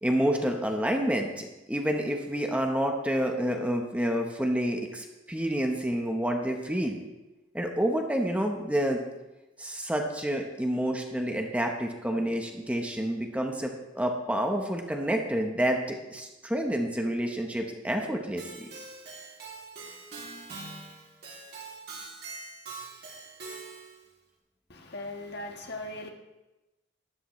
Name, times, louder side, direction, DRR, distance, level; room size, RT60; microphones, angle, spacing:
voice 1, 0.0-7.0 7.5-9.0 9.6-18.7, equal, 5° right, 3 dB, 1.0 m, -29 dB
Keyboard (musical), 18.4-24.0, right 3 dB, 55° right, 2.9 m, -43 dB
voice 2, 24.7-26.1, left 1 dB, 60° left, 3 dB, 1.4 m, -39 dB
13.0 x 11.0 x 3.2 m, 1.0 s
head